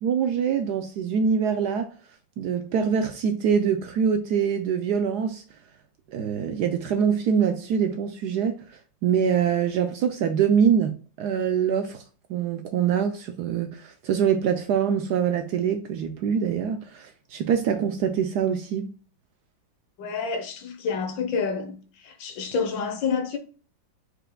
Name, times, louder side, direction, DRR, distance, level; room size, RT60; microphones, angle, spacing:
voice 1, 0.0-1.9 2.4-5.4 6.1-8.6 9.0-12.0 12.3-18.9, right 7 dB, 75° right, 1.0 m, -24 dB
voice 2, 20.0-21.8 22.0-23.4, left 5 dB, 75° left, 1.6 m, -28 dB
5.0 x 4.5 x 2.2 m
omnidirectional pair, 2.1 m